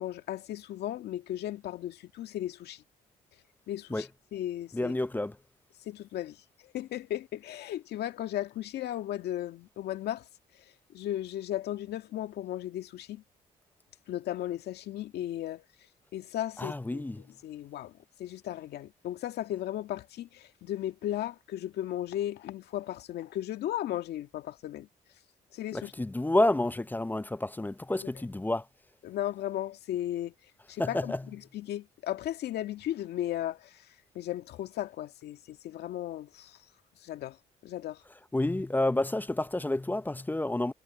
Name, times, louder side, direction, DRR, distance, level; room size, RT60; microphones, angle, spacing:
voice 1, 0.0-2.8 3.7-4.9 5.9-6.4 6.6-10.2 10.9-13.2 14.1-15.6 16.1-17.0 17.4-17.9 18.2-24.9 25.5-25.9 29.0-30.3 30.7-33.8 34.2-36.6 37.0-37.4 37.6-38.0, left 12 dB, 75° left, 2.0 m, -35 dB
voice 2, 4.7-5.4 16.6-17.2 25.7-28.6 30.8-31.2 38.3-40.7, left 1 dB, 10° left, 0.6 m, -29 dB
supercardioid pair, 65°, 17 cm